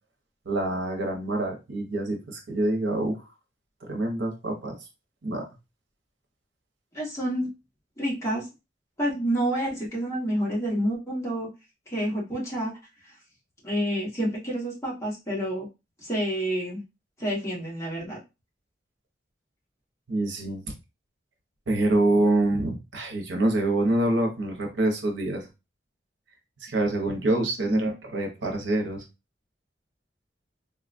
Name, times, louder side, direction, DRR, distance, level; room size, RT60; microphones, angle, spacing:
voice 1, 0.5-3.2 3.8-4.7 5.2-5.5 20.1-20.6 21.7-25.5 26.6-29.0, right 2 dB, 85° right, 2 dB, 0.8 m, -26 dB
voice 2, 6.9-7.5 8.0-8.5 9.0-11.5 11.9-12.7 13.0-13.1 13.6-15.7 16.0-16.8 17.2-18.2 27.7-27.9, equal, 15° left, -6 dB, 1.3 m, -28 dB
3.8 x 2.3 x 2.5 m, 0.26 s
head